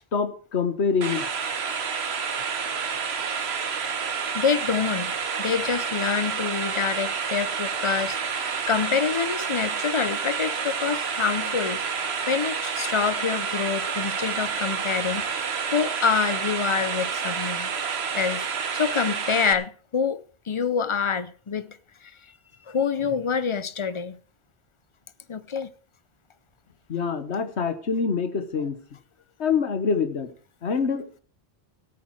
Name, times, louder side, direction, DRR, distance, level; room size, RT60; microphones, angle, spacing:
voice 1, 0.1-1.3 26.9-28.8 29.4-30.3 30.6-31.0, left 5 dB, 80° left, 1.5 m, -25 dB
sound 1, 1.0-19.5, right 6 dB, 70° right, 1.3 m, -29 dB
voice 2, 4.3-15.3 15.7-17.7 18.1-18.5 18.7-21.8 22.0-22.1 22.7-24.2 25.3-25.7, left 6 dB, 35° left, 0.5 m, -26 dB
16.5 x 8.7 x 4.7 m
omnidirectional pair, 1.1 m